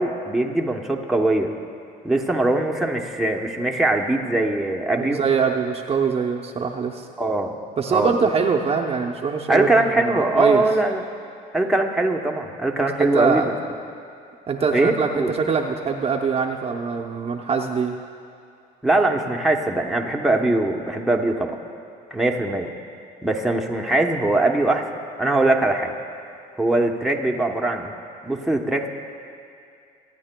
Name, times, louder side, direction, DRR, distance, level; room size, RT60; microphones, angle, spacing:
voice 1, 0.0-1.5 2.0-5.2 7.2-7.6 7.9-8.3 9.5-11.0 11.5-13.5 14.7-15.3 18.8-21.5 22.1-22.7 23.2-24.9 25.2-25.9 26.6-27.9 28.2-28.9, right 2 dB, ahead, 1 dB, 0.9 m, -21 dB
voice 2, 4.9-7.1 7.8-10.6 13.0-13.5 14.5-18.0, right 5 dB, 35° right, 3 dB, 0.7 m, -23 dB
24.0 x 9.7 x 2.2 m, 2.4 s
cardioid pair, 110°, 17 cm